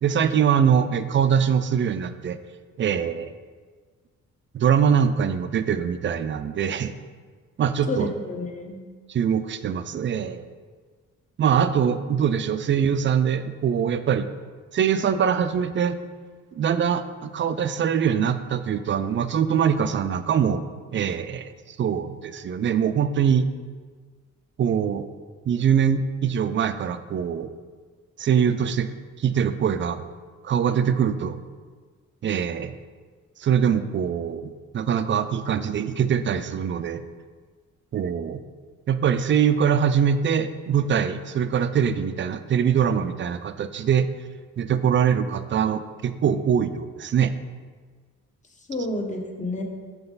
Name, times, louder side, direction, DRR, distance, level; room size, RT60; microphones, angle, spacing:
voice 1, 0.0-2.4 2.8-3.3 4.5-6.9 7.6-8.1 9.1-10.5 11.4-14.3 14.7-16.0 16.6-20.6 20.9-21.5 21.8-23.4 24.6-25.0 25.5-27.5 28.2-28.9 29.2-30.0 30.4-31.4 32.2-32.8 33.4-37.0 37.9-38.4 38.9-44.1 44.6-47.3, right 8 dB, 40° right, 11 dB, 0.4 m, -23 dB
voice 2, 7.9-8.8 48.7-49.6, left 1 dB, 25° left, 2 dB, 1.1 m, -29 dB
7.0 x 5.7 x 3.9 m, 1.5 s
cardioid pair, 90°, 30 cm